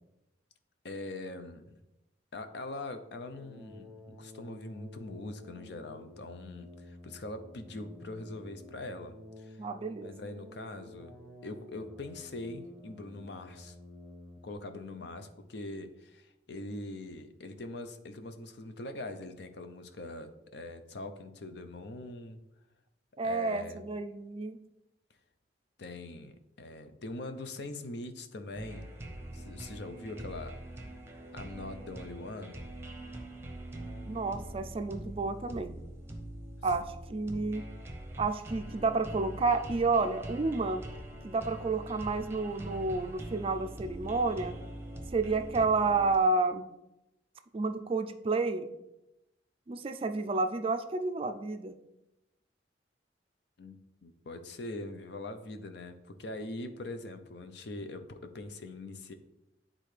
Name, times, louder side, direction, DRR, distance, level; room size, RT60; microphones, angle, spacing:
voice 1, 0.8-1.8 2.3-9.7 10.0-11.1 11.4-13.8 14.4-22.4 23.2-23.8 25.8-28.9 29.3-31.0 31.3-32.6 53.6-59.1, left 2 dB, 65° left, 8 dB, 0.6 m, -42 dB
sound 1, 3.2-14.5, left 1 dB, 5° left, 1.0 m, -51 dB
voice 2, 9.6-10.1 23.2-24.6 34.1-35.8 36.6-37.6 38.2-40.8 41.2-44.6 45.1-46.6 47.5-48.7 49.7-51.7, right 3 dB, 30° right, 8 dB, 0.4 m, -30 dB
sound 2, 28.5-46.2, right 1 dB, 15° right, 0.8 m, -43 dB
9.8 x 3.7 x 3.3 m, 0.92 s
head